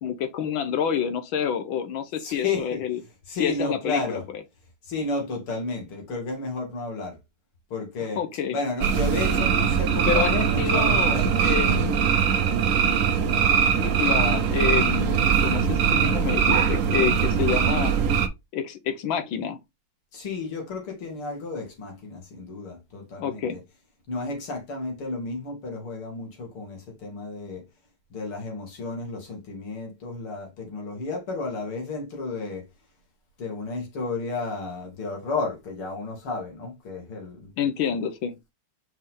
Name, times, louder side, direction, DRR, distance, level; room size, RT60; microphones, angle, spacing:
voice 1, 0.0-3.0 3.4-4.2 8.2-8.6 10.1-12.0 13.7-17.9 18.5-19.6 23.2-23.6 37.6-38.4, left 8 dB, 70° left, 1.6 m, -28 dB
voice 2, 2.2-2.9 3.3-4.3 4.8-7.2 7.7-8.2 8.5-12.0 20.1-23.6 24.1-27.7 28.1-32.7 33.4-37.5, left 3 dB, 85° left, 3.2 m, -32 dB
sound 1, 8.8-18.3, right 7 dB, 65° right, 0.7 m, -21 dB
5.5 x 4.7 x 3.6 m
omnidirectional pair, 2.3 m